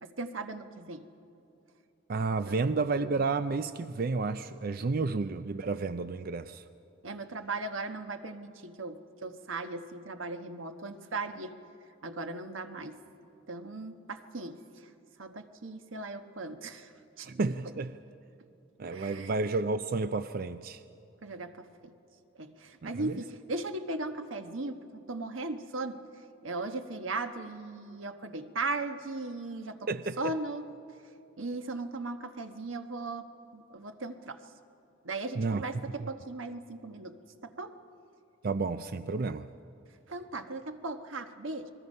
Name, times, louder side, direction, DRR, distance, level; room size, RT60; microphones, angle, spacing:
voice 1, 0.0-1.1 2.4-2.8 7.0-11.6 12.0-13.0 13.5-14.6 15.2-16.9 17.2-17.3 18.9-19.3 21.2-21.7 22.4-24.8 25.1-26.0 26.4-29.8 30.2-30.7 31.4-34.4 35.0-37.8 40.1-41.7, right 2 dB, 90° right, 1.2 m, -37 dB
voice 2, 2.1-6.6 17.3-18.0 18.8-20.8 22.8-23.2 29.9-30.3 35.4-35.6 36.0-36.1 38.4-39.5, right 3 dB, 50° right, 0.4 m, -31 dB
29.5 x 21.0 x 5.5 m
head